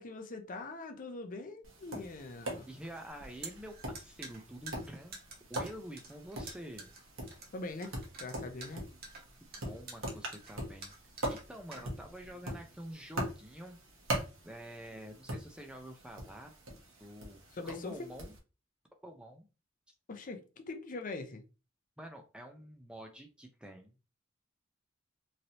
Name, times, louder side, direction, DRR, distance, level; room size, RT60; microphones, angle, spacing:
voice 1, 0.0-2.7 7.5-8.8 11.7-11.8 17.5-18.1 20.1-21.4, left 3 dB, 40° left, 0.6 m, -42 dB
Tap, 1.6-18.4, right 1 dB, 85° right, 1.0 m, -43 dB
voice 2, 2.7-5.2 5.5-6.9 9.4-10.9 11.3-13.8 14.4-16.5 17.0-18.4 19.0-19.5 22.0-24.0, equal, 5° right, 0.4 m, -48 dB
sound 1, 3.1-12.3, right 3 dB, 50° right, 0.9 m, -49 dB
3.1 x 2.7 x 2.7 m
head